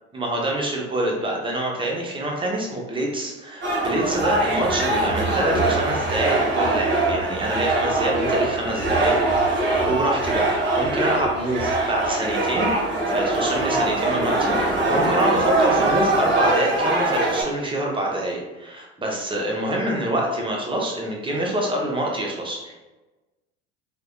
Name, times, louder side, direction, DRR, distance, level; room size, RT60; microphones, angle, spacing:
voice 1, 0.1-22.7, right 1 dB, 15° right, -1 dB, 0.9 m, -26 dB
sound 1, 3.6-17.4, right 2 dB, 35° right, 1.2 m, -22 dB
3.3 x 3.0 x 2.3 m, 1.1 s
hypercardioid pair, 75°, 32 cm